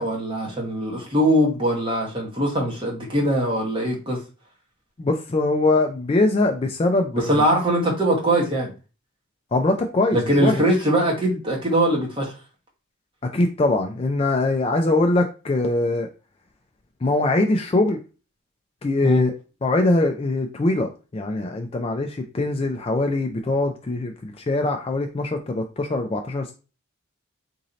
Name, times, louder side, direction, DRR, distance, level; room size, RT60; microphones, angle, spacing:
voice 1, 0.0-4.2 7.1-8.7 10.1-12.3 19.0-19.2, right 1 dB, 20° right, -2 dB, 1.0 m, -22 dB
voice 2, 5.0-7.4 9.5-10.6 13.3-16.1 17.0-18.0 18.8-19.3 19.6-26.5, left 2 dB, 25° left, 4 dB, 0.3 m, -22 dB
3.0 x 2.7 x 3.9 m, 0.33 s
head